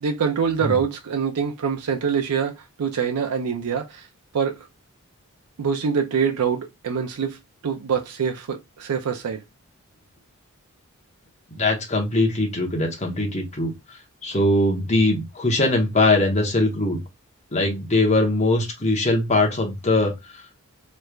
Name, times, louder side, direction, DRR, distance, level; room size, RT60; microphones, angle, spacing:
voice 1, 0.0-4.1 4.3-4.7 5.6-7.4 7.6-9.4, right 6 dB, 90° right, 0.4 m, -25 dB
voice 2, 11.5-13.7 14.2-17.0 17.5-20.4, left 2 dB, 30° left, 0.9 m, -21 dB
3.2 x 3.1 x 2.3 m
head